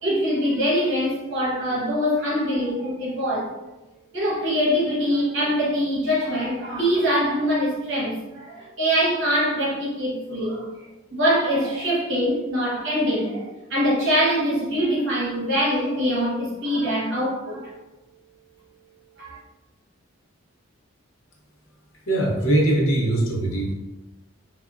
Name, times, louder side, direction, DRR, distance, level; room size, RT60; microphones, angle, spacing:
voice 1, 0.0-3.5 4.1-10.7 11.1-17.7 19.2-19.4, equal, 60° right, 1.0 m, -23 dB
voice 2, 22.1-23.7, right 1 dB, 75° left, 0.7 m, -21 dB
2.9 x 2.0 x 2.4 m
head